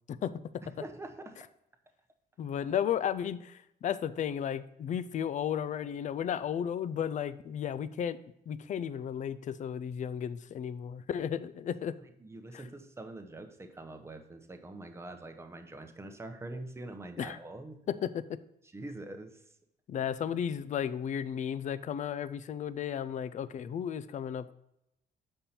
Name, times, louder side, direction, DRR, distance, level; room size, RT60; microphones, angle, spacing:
voice 1, 0.8-1.4 12.2-17.8 18.7-19.4, right 2 dB, 15° right, 6 dB, 0.8 m, -44 dB
voice 2, 2.4-8.2 8.5-12.0 12.5-12.7 17.2-17.4 17.9-18.4 19.9-24.5, left 9 dB, 45° left, 15 dB, 0.4 m, -34 dB
7.3 x 5.4 x 4.3 m, 0.81 s
cardioid pair, 125°, 18 cm